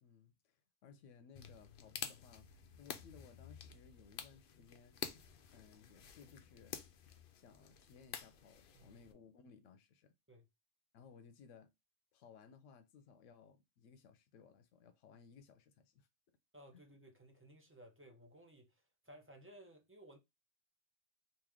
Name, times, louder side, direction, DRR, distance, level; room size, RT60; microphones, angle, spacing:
voice 1, 0.0-5.0 5.5-6.8 7.3-10.1 10.9-11.7 12.1-16.1 16.7-16.8, left 6 dB, 90° left, 0.9 m, -61 dB
sound 1, 1.4-9.1, left 8 dB, 60° left, 0.6 m, -50 dB
voice 2, 16.5-20.2, right 1 dB, 15° right, 0.6 m, -59 dB
3.1 x 2.7 x 3.5 m
omnidirectional pair, 1.2 m